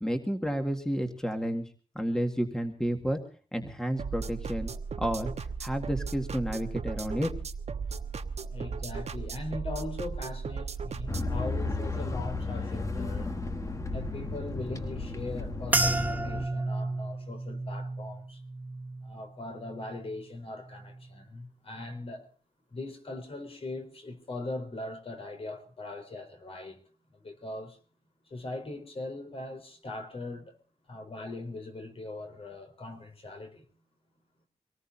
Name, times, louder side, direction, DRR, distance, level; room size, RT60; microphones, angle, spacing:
voice 1, 0.0-1.7 2.0-3.2 3.5-4.7 5.0-5.3 5.6-7.3, equal, 5° left, 1.8 m, -31 dB
sound 1, 4.0-11.4, right 5 dB, 65° right, 1.2 m, -36 dB
voice 2, 8.5-13.3 13.9-18.4 19.0-22.3 22.7-26.8 27.1-27.8 28.3-30.6 30.9-33.7, left 2 dB, 55° left, 4.1 m, -40 dB
sound 2, 11.1-16.5, left 2 dB, 25° left, 1.5 m, -33 dB
sound 3, 15.7-20.3 20.6-21.2 21.8-22.1, right 2 dB, 15° right, 1.1 m, -33 dB
25.5 x 19.0 x 2.7 m
wide cardioid pair, 140°, 12 cm